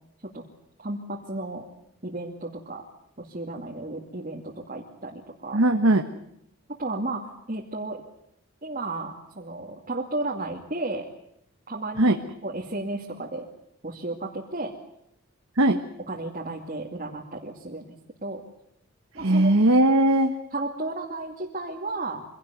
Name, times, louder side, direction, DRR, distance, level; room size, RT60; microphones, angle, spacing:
voice 1, 0.8-1.6 2.0-2.8 3.2-5.6 6.8-8.0 8.6-11.0 11.7-13.5 13.8-14.7 16.1-17.9 18.2-18.4 19.1-19.5 20.5-22.3, right 2 dB, 40° right, -1 dB, 2.4 m, -33 dB
voice 2, 5.5-6.0 12.0-12.2 15.6-15.8 19.2-20.3, right 1 dB, 70° right, 5 dB, 1.4 m, -19 dB
25.0 x 17.5 x 9.5 m, 0.76 s
head